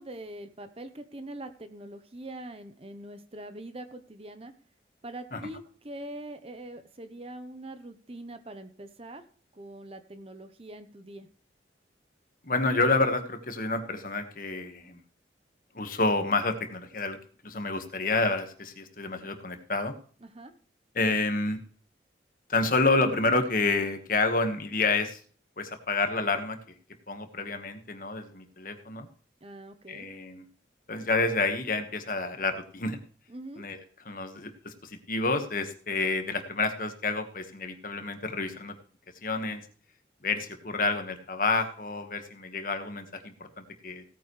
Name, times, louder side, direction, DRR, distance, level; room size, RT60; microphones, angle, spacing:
voice 1, 0.0-4.5 5.0-9.2 9.5-11.3 20.2-20.5 29.4-30.1 33.3-33.6, right 1 dB, 30° right, 9 dB, 0.9 m, -43 dB
voice 2, 12.4-15.0 15.7-17.2 17.4-19.9 20.9-21.6 22.5-25.2 25.6-26.7 27.1-29.1 29.9-30.5 30.9-33.0 33.6-33.8 34.0-38.7 39.2-39.6 40.2-44.0, left 3 dB, 50° left, 7 dB, 1.6 m, -29 dB
17.0 x 9.2 x 3.3 m, 0.43 s
head